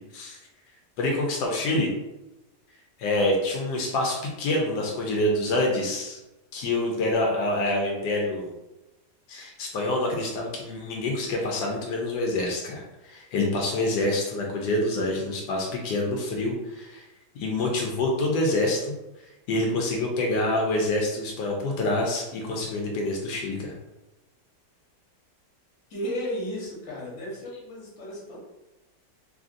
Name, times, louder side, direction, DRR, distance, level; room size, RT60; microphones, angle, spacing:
voice 1, 1.0-1.9 3.0-6.2 6.5-8.5 9.3-17.0 17.4-19.0 19.5-23.7, left 1 dB, 85° left, 0 dB, 1.2 m, -26 dB
voice 2, 25.9-28.5, equal, 55° left, -5 dB, 1.4 m, -34 dB
3.3 x 2.5 x 2.5 m, 1.0 s
omnidirectional pair, 1.8 m